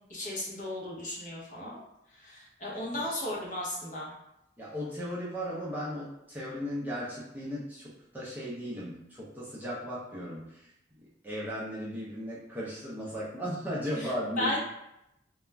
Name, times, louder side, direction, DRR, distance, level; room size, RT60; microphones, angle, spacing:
voice 1, 0.1-1.8 2.1-4.1 14.0-14.1 14.3-14.6, left 1 dB, 40° left, -4 dB, 0.6 m, -35 dB
voice 2, 4.6-10.7 11.2-14.6, equal, 10° right, -7 dB, 0.4 m, -36 dB
2.3 x 2.0 x 3.3 m, 0.84 s
head